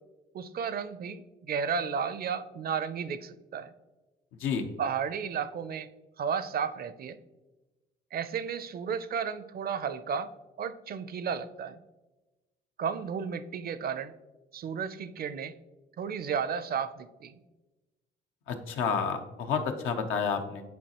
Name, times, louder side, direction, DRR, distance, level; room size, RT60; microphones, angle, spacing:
voice 1, 0.3-3.7 4.8-5.9 6.2-7.2 8.1-11.8 12.8-14.1 14.5-15.5 16.0-17.4, right 6 dB, 50° right, 14 dB, 0.5 m, -33 dB
voice 2, 18.5-20.6, left 6 dB, 90° left, 6 dB, 0.7 m, -30 dB
9.4 x 4.0 x 2.9 m, 1.1 s
cardioid pair, 90°, 20 cm